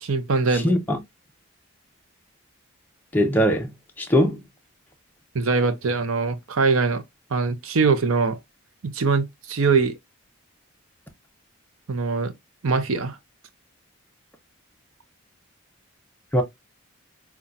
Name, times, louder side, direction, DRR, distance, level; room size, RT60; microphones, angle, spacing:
voice 1, 0.0-0.7 5.3-7.0 7.3-8.4 8.8-10.0 11.9-12.3 12.6-13.2, right 4 dB, 75° right, 0.6 m, -22 dB
voice 2, 0.6-1.0 3.1-3.7 4.0-4.4 16.3-16.4, equal, 10° left, 0.6 m, -20 dB
5.4 x 2.3 x 2.4 m
head